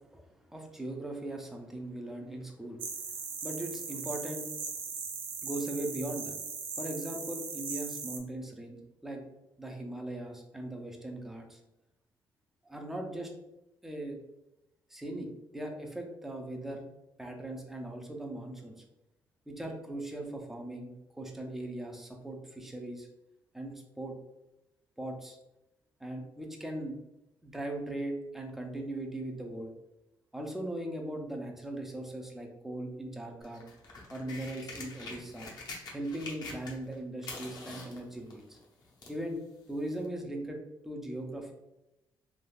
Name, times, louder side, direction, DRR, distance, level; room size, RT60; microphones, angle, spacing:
voice 1, 0.5-2.8 3.4-4.5 5.4-6.3 6.8-9.2 9.6-11.6 12.7-13.3 13.8-14.2 14.9-16.8 17.2-18.8 19.5-23.1 23.5-24.1 25.0-25.4 26.0-26.9 27.4-29.7 30.3-33.6 34.1-35.5 35.9-38.6 39.1-39.4 39.7-40.6 40.8-41.5, right 1 dB, 5° right, 1 dB, 0.4 m, -39 dB
sound 1, 2.8-8.2, right 5 dB, 75° right, 0.4 m, -39 dB
sound 2, 33.4-36.9 37.2-39.2 40.0-40.1, left 3 dB, 50° left, 0.6 m, -45 dB
3.3 x 2.3 x 2.3 m, 0.92 s
cardioid pair, 165°, 8 cm